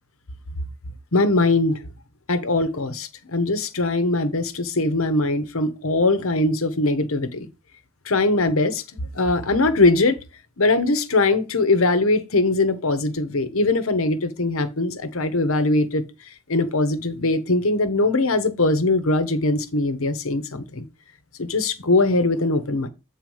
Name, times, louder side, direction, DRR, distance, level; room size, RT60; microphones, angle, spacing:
voice 1, 1.1-1.8 2.3-7.5 8.0-8.8 9.1-10.2 10.6-16.0 16.5-20.8 21.4-22.9, left 2 dB, 70° left, 1.0 m, -21 dB
7.8 x 4.1 x 5.5 m
head